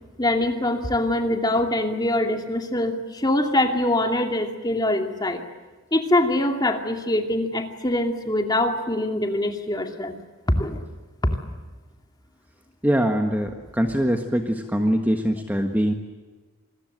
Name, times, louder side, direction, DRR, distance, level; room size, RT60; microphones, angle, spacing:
voice 1, 0.2-5.4 5.9-10.2 10.5-10.8 11.2-11.4, left 1 dB, 20° left, 4 dB, 2.4 m, -23 dB
voice 2, 12.8-15.9, equal, 10° right, 4 dB, 1.5 m, -23 dB
27.5 x 21.5 x 8.0 m, 1.3 s
head